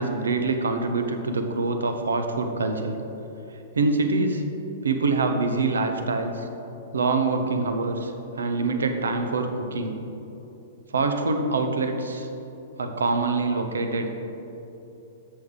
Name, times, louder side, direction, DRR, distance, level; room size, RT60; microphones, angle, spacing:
voice 1, 0.0-2.9 3.7-4.5 4.8-6.5 6.9-8.1 8.4-10.0 10.9-12.3 12.8-14.1, right 3 dB, 75° right, 6 dB, 0.7 m, -25 dB
7.7 x 6.4 x 3.7 m, 3.0 s
figure-of-eight pair, 105°, 0 cm